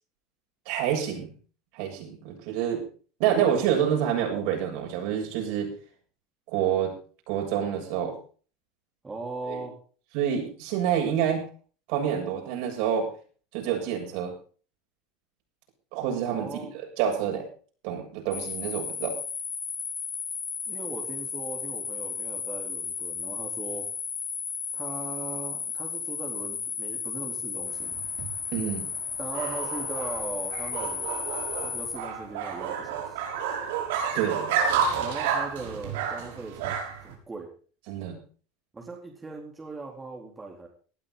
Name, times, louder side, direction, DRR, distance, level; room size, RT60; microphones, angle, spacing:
voice 1, 0.7-1.3 1.7-2.8 3.2-5.7 6.5-6.9 7.3-8.1 9.5-9.6 10.1-11.4 11.9-13.1 13.5-14.3 15.9-16.6 17.0-17.5 17.8-19.2 28.5-28.9 34.1-34.5 37.9-38.2, right 9 dB, 60° right, 2 dB, 7.4 m, -27 dB
voice 2, 9.0-9.7 16.3-16.7 20.7-23.9 24.7-28.0 29.2-31.1 31.6-33.2 35.0-37.5 38.7-40.7, right 3 dB, 10° right, 0 dB, 3.9 m, -39 dB
sound 1, 18.3-32.0, left 6 dB, 25° left, 6.7 m, -34 dB
sound 2, 27.7-37.1, right 7 dB, 85° right, 6.1 m, -30 dB
19.0 x 12.5 x 4.1 m, 0.41 s
supercardioid pair, 145°, 0 cm